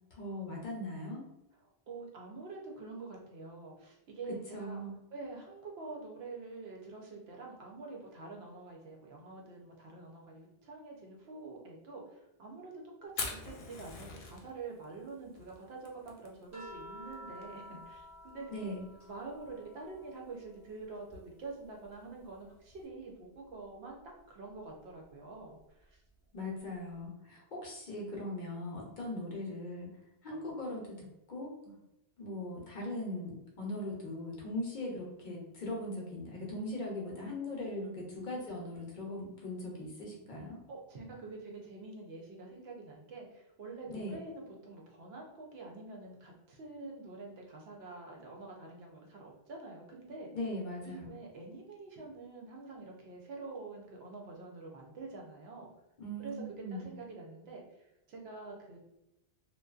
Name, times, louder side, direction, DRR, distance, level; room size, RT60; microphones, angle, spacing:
voice 1, 0.1-1.3 4.3-5.0 18.5-18.8 26.3-29.9 30.2-31.5 32.2-40.6 43.9-44.2 50.3-51.1 56.0-56.9, left 1 dB, 55° left, -2 dB, 0.7 m, -40 dB
voice 2, 1.6-4.8 5.1-18.8 19.1-24.0 24.3-26.0 28.8-29.0 31.7-31.8 40.7-50.3 50.8-55.7 56.2-58.8, right 3 dB, 75° right, 0 dB, 0.9 m, -47 dB
Fire, 13.1-22.9, left 4 dB, 85° left, 0.8 m, -47 dB
sound 1, 16.5-21.0 21.4-23.0 24.5-24.7, equal, 20° right, 0.7 m, -52 dB
2.6 x 2.2 x 2.3 m, 0.89 s
omnidirectional pair, 1.1 m